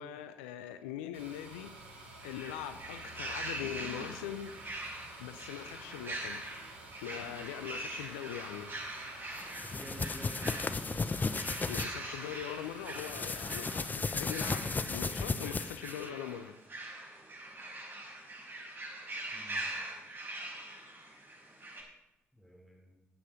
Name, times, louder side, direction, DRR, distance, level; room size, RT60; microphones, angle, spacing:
voice 1, 0.0-1.7 2.2-4.5 5.2-6.5 7.0-8.7 11.7-16.6, left 10 dB, 80° left, 10 dB, 0.5 m, -42 dB
sound 1, 1.1-13.9, right 2 dB, 85° right, 1.9 m, -51 dB
sound 2, 2.2-21.8, right 2 dB, 35° right, 5.3 m, -43 dB
sound 3, 9.4-11.9 12.9-16.0, left 4 dB, 30° left, 0.7 m, -35 dB
voice 2, 9.6-10.6 19.3-19.7 22.3-23.0, equal, 5° left, 2 dB, 3.7 m, -49 dB
12.5 x 9.0 x 5.1 m, 0.94 s
hypercardioid pair, 45°, 6 cm